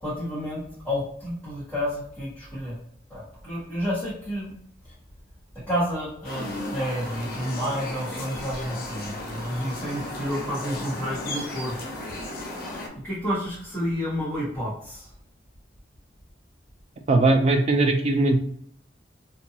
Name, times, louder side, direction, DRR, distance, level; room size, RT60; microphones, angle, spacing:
voice 1, 0.0-2.8 3.1-4.5 4.8-4.9 5.7-11.7 13.0-15.1, equal, 10° left, -10 dB, 0.9 m, -30 dB
sound 1, 6.2-12.9, left 1 dB, 50° left, 0.5 m, -35 dB
voice 2, 17.1-18.4, right 2 dB, 35° right, 5 dB, 0.3 m, -19 dB
2.7 x 2.3 x 2.7 m, 0.65 s
head